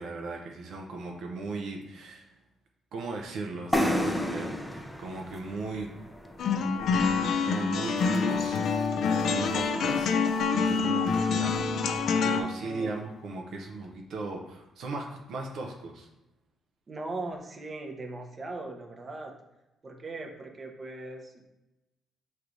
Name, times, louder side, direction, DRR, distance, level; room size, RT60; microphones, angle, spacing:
voice 1, 0.0-2.3 2.9-5.9 7.3-8.6 9.2-10.1 10.5-16.1, right 3 dB, 75° right, 1 dB, 0.5 m, -37 dB
sound 1, 3.7-7.4, left 1 dB, 5° left, 0.4 m, -31 dB
sound 2, 6.4-12.4, left 5 dB, 70° left, 0.3 m, -26 dB
sound 3, 7.9-13.3, left 1 dB, 50° left, 1.1 m, -47 dB
voice 2, 12.6-12.9 16.9-19.3 19.8-21.5, right 2 dB, 35° right, 2 dB, 0.6 m, -39 dB
4.6 x 3.2 x 2.5 m, 0.97 s
cardioid pair, 90°, 0 cm